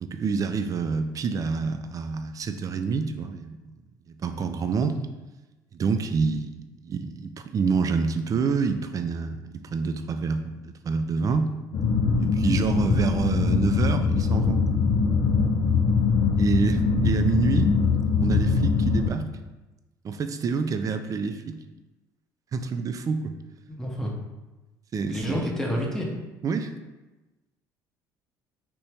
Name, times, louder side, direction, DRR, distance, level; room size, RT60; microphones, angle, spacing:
voice 1, 0.0-3.6 4.1-5.0 5.7-6.5 6.8-11.5 12.2-14.6 16.4-17.8 18.2-19.3 20.0-21.6 22.5-23.3 24.9-25.4 26.4-26.7, right 5 dB, 35° right, 8 dB, 0.3 m, -27 dB
sound 1, 11.7-19.1, left 4 dB, 50° left, 0.5 m, -22 dB
voice 2, 23.7-24.1 25.1-26.1, equal, 5° left, -2 dB, 0.8 m, -28 dB
2.9 x 2.6 x 3.4 m, 1.1 s
hypercardioid pair, 65°, 10 cm